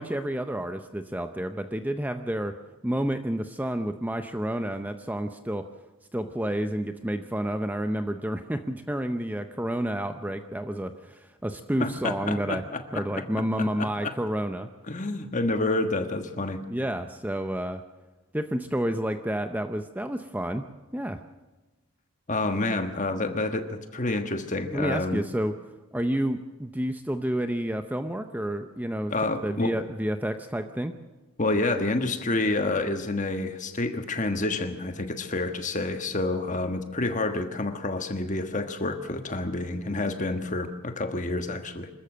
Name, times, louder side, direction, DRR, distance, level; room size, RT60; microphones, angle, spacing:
voice 1, 0.0-2.6 2.8-5.7 6.1-12.6 12.9-14.7 16.7-17.8 18.3-20.7 20.9-21.2 24.7-25.6 25.9-30.9, right 1 dB, 5° right, 8 dB, 0.6 m, -30 dB
voice 2, 11.8-13.0 13.6-14.1 14.9-16.6 22.3-25.2 29.1-29.7 31.4-41.9, left 2 dB, 35° left, 7 dB, 1.4 m, -28 dB
25.5 x 13.5 x 7.7 m, 1.2 s
head